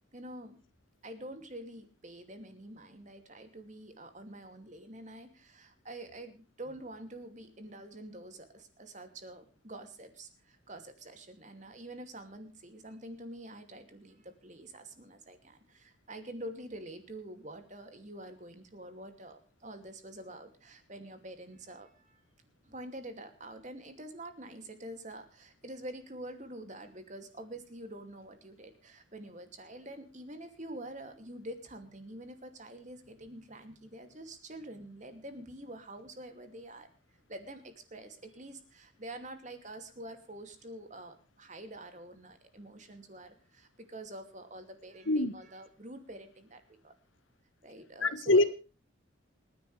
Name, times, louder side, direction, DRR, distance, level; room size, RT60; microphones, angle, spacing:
voice 1, 0.1-0.6 1.0-22.2 22.6-36.9 37.3-46.9 47.6-48.4, right 1 dB, 35° right, 2.6 m, -46 dB
voice 2, 48.0-48.4, left 2 dB, 80° left, 1.5 m, -24 dB
27.5 x 10.5 x 3.3 m
head